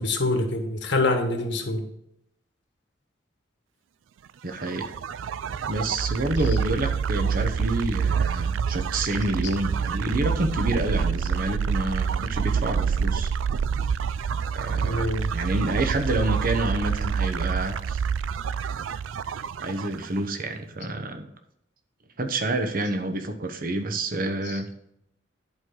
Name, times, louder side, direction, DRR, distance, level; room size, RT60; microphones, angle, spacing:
voice 1, 0.0-1.9 6.4-6.6 14.8-15.3 24.4-24.6, left 2 dB, 65° left, 4 dB, 1.4 m, -26 dB
voice 2, 4.4-4.9 5.7-13.3 14.5-15.1 15.3-18.0 18.5-18.8 19.6-21.3 22.2-24.7, right 2 dB, 50° right, 6 dB, 1.0 m, -28 dB
sound 1, 4.5-20.2, right 6 dB, 85° right, 0.4 m, -27 dB
11.0 x 4.7 x 3.9 m, 0.77 s
head